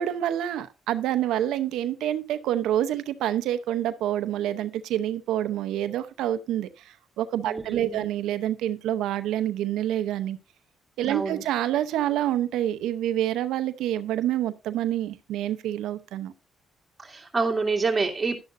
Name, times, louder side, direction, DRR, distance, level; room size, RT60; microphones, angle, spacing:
voice 1, 0.0-10.4 11.0-16.3, right 12 dB, 90° right, 12 dB, 0.7 m, -27 dB
voice 2, 7.5-8.1 11.1-11.4 17.0-18.4, right 4 dB, 20° right, 1 dB, 2.5 m, -27 dB
11.5 x 10.5 x 2.6 m, 0.27 s
cardioid pair, 90°, 0 cm